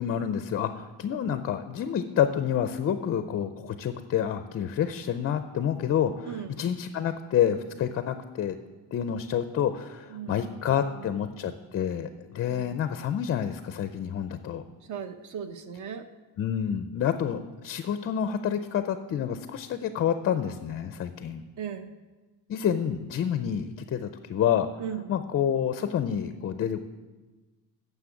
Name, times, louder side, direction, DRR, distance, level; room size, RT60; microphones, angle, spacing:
voice 1, 0.0-8.6 8.9-14.6 16.4-21.4 22.5-24.7 25.1-26.8, left 9 dB, 35° left, 10 dB, 0.4 m, -28 dB
voice 2, 6.3-6.7 10.1-10.8 12.5-12.7 14.9-16.1 21.6-22.0 24.8-25.0, right 8 dB, 45° right, 9 dB, 0.8 m, -37 dB
9.8 x 7.1 x 7.0 m, 1.2 s
cardioid pair, 170°, 40 cm